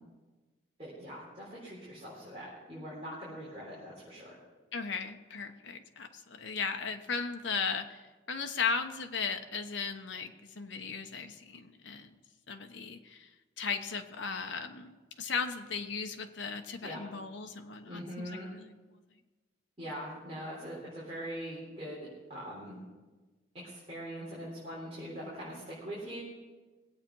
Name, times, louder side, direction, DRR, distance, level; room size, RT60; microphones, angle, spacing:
voice 1, 0.8-4.3 16.8-17.0 17.8-18.5 19.8-22.8 23.6-26.2, equal, 30° right, -8 dB, 4.0 m, -42 dB
voice 2, 4.7-8.0 8.3-12.1 12.5-13.3 13.6-18.7, left 5 dB, 75° left, 6 dB, 1.0 m, -36 dB
20.0 x 8.6 x 5.5 m, 1.2 s
head